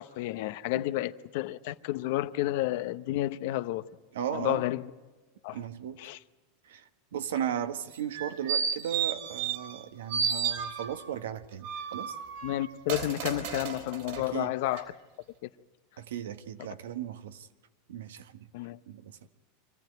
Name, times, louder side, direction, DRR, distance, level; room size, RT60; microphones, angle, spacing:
voice 1, 0.0-3.9 4.3-4.9 5.4-5.6 6.0-6.2 12.4-14.9 15.4-15.5 18.5-18.8, left 15 dB, 65° left, 0.7 m, -31 dB
voice 2, 4.1-4.7 5.5-6.0 6.7-6.8 7.1-12.2 14.3-14.5 16.0-17.5 17.9-18.5 18.9-19.3, right 9 dB, 90° right, 1.1 m, -36 dB
sound 1, 7.9-9.8 10.1-11.1 11.6-14.2 14.7-14.8, right 7 dB, 70° right, 3.5 m, -32 dB
25.0 x 15.0 x 9.3 m
supercardioid pair, 125°, 0 cm